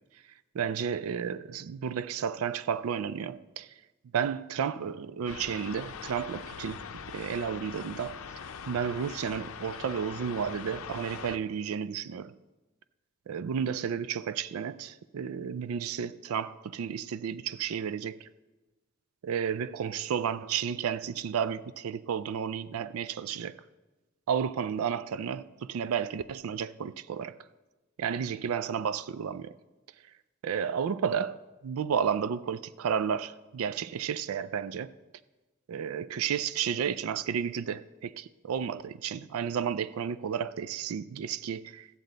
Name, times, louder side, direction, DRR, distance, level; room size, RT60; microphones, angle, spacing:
voice 1, 0.5-3.7 4.1-8.2 8.7-12.3 13.3-18.3 19.2-23.6 24.3-27.4 28.0-29.6 30.4-34.9 35.7-42.0, right 7 dB, 90° right, 0.4 m, -32 dB
sound 1, 5.3-11.4, left 6 dB, 80° left, 0.6 m, -42 dB
13.0 x 7.6 x 3.9 m
head